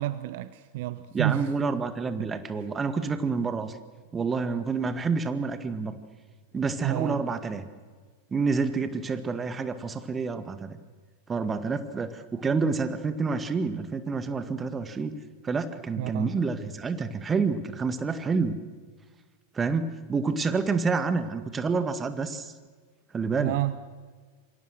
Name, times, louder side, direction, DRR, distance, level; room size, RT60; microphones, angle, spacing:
voice 1, 0.0-1.5 1.7-1.9 2.2-2.3 6.8-7.2 16.0-16.3 23.4-23.8, right 16 dB, 50° right, 15 dB, 0.8 m, -30 dB
voice 2, 1.1-3.8 4.1-6.0 6.5-7.7 8.3-10.8 11.3-15.1 15.4-18.6 19.5-22.5 23.1-23.5, right 4 dB, 20° right, 10 dB, 1.9 m, -28 dB
27.0 x 24.5 x 6.5 m, 1.5 s
figure-of-eight pair, 90°, 0 cm